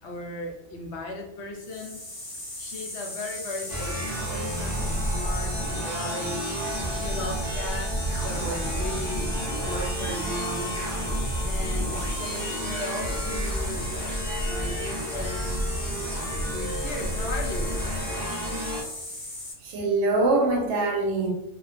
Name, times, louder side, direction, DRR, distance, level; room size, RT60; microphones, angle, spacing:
voice 1, 0.0-2.0 2.6-5.5 5.8-6.5 6.9-7.9 8.2-10.7 11.4-13.9 14.5-15.6 16.5-17.8, left 1 dB, 70° left, 0 dB, 0.8 m, -36 dB
sound 1, 1.6-19.5, left 1 dB, 35° left, 0.3 m, -37 dB
sound 2, 3.7-18.8, equal, 35° right, 0.4 m, -30 dB
voice 2, 19.6-21.3, right 2 dB, 75° right, 1 dB, 0.8 m, -23 dB
2.3 x 2.2 x 2.4 m, 0.89 s
omnidirectional pair, 1.3 m